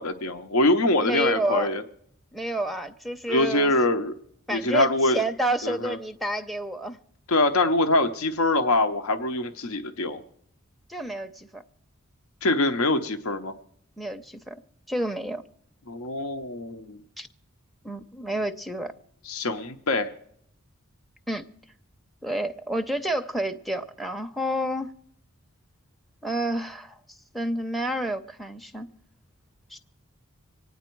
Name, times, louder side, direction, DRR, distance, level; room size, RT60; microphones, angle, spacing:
voice 1, 0.0-1.8 3.3-4.1 4.5-5.2 5.6-6.0 7.3-10.2 12.4-13.5 15.9-17.0 19.2-20.1, left 2 dB, 80° left, 8 dB, 0.8 m, -24 dB
voice 2, 1.0-1.7 2.3-3.7 4.5-7.0 10.9-11.6 14.0-14.6 14.9-15.4 17.2-17.3 17.8-18.9 21.3-21.4 22.2-24.9 26.2-28.9 29.7-29.8, right 1 dB, ahead, 8 dB, 0.5 m, -29 dB
25.5 x 9.4 x 4.5 m, 0.70 s
head